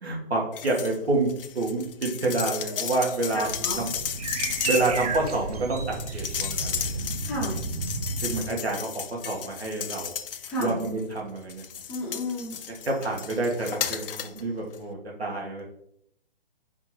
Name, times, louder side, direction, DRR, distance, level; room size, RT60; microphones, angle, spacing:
voice 1, 0.0-1.3 1.5-3.5 3.8-3.9 4.6-5.8 6.1-7.0 8.2-10.1 10.6-11.6 12.7-15.6, right 2 dB, 85° right, -1 dB, 1.5 m, -28 dB
sound 1, 0.5-1.0 1.3-11.0 11.5-14.4 14.7-14.8, left 8 dB, 60° left, 0.4 m, -34 dB
voice 2, 3.3-3.8 7.2-7.6 10.5-10.8 11.9-12.5, left 1 dB, 5° left, -7 dB, 0.6 m, -31 dB
sound 2, 3.4-8.4, right 4 dB, 40° right, 0.6 m, -32 dB
4.4 x 3.7 x 3.0 m, 0.72 s
figure-of-eight pair, 140°, 31 cm